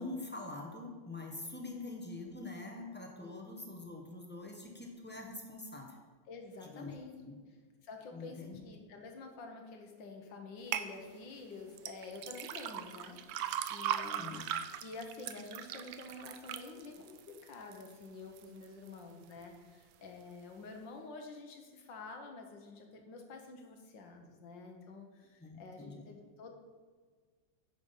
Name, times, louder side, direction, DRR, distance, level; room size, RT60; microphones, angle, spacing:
voice 1, 0.0-6.0 6.6-6.9 7.2-7.3 8.1-8.6 14.2-14.4 25.4-26.1, left 2 dB, 10° left, 1 dB, 0.6 m, -44 dB
voice 2, 6.3-7.2 7.8-14.4 14.8-26.5, left 3 dB, 75° left, 3 dB, 1.7 m, -49 dB
sound 1, 10.7-10.9 11.8-17.9 18.4-18.9 19.4-19.5, right 10 dB, 80° right, 1.3 m, -39 dB
9.5 x 5.3 x 5.6 m, 1.5 s
omnidirectional pair, 2.1 m